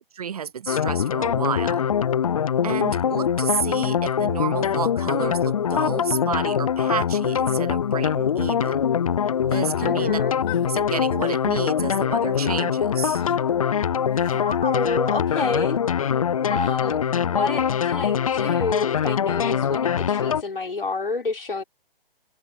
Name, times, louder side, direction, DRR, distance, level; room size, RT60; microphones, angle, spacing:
voice 1, 0.2-1.9 2.6-8.9 9.4-10.2 10.7-13.2, right 7 dB, 40° right, 0.6 m, -30 dB
sound 1, 0.7-20.4, left 8 dB, 35° left, 0.5 m, -23 dB
sound 2, 9.5-9.8 10.5-10.7 11.2-11.4 12.4-12.6 13.2-13.4 14.1-14.4 15.3-15.6 16.6-16.8 18.4-18.6, left 21 dB, 15° left, 1.6 m, -38 dB
voice 2, 9.8-10.4 14.3-15.8 16.4-21.6, left 3 dB, 70° left, 5.4 m, -29 dB
figure-of-eight pair, 135°, 29 cm